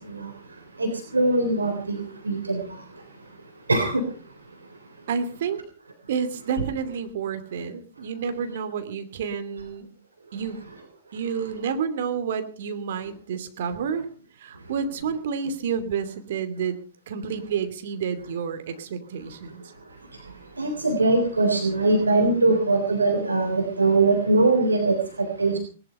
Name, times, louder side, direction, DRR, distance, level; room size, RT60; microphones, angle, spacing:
voice 1, 0.8-2.6 3.7-4.0 20.6-25.6, right 2 dB, 85° right, 4 dB, 3.5 m, -22 dB
voice 2, 5.1-5.6 6.1-9.9 10.3-10.6 11.1-14.1 14.4-16.8 17.1-19.6, right 6 dB, 60° right, 9 dB, 2.7 m, -29 dB
19.5 x 12.0 x 5.6 m, 0.40 s
figure-of-eight pair, 105°, 0 cm